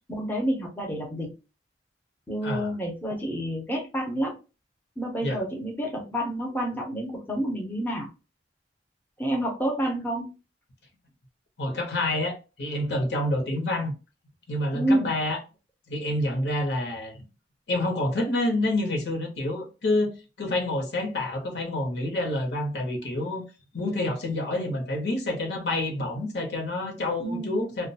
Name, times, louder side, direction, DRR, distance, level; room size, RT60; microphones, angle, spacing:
voice 1, 0.1-1.3 2.3-4.4 5.0-8.1 9.2-10.3 14.7-15.1 27.2-27.5, right 1 dB, 10° left, 0.6 m, -28 dB
voice 2, 11.6-13.9 14.5-15.4 15.9-17.2 17.7-23.4 23.7-27.9, left 1 dB, 65° left, 0.9 m, -28 dB
2.4 x 2.2 x 2.7 m
head